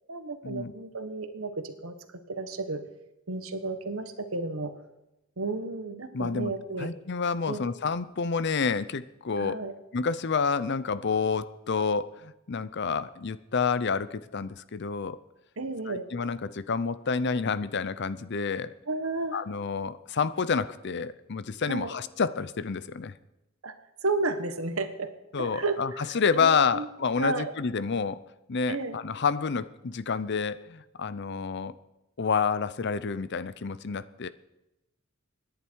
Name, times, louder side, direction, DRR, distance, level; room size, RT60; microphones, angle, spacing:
voice 1, 0.1-2.0 2.3-2.8 3.3-4.7 5.4-6.9 7.5-7.7 9.4-9.7 15.6-16.1 18.9-19.4 21.6-21.9 23.6-23.7 24.0-25.1 25.4-25.8 26.1-26.9 27.2-27.5 28.7-29.0, right 3 dB, 90° right, 8 dB, 1.4 m, -32 dB
voice 2, 6.1-6.5 6.8-9.6 9.9-15.2 15.9-18.7 19.3-23.1 25.3-28.2 28.5-31.7 32.2-34.3, left 5 dB, 55° left, 15 dB, 0.6 m, -29 dB
25.5 x 10.5 x 4.7 m, 0.96 s
head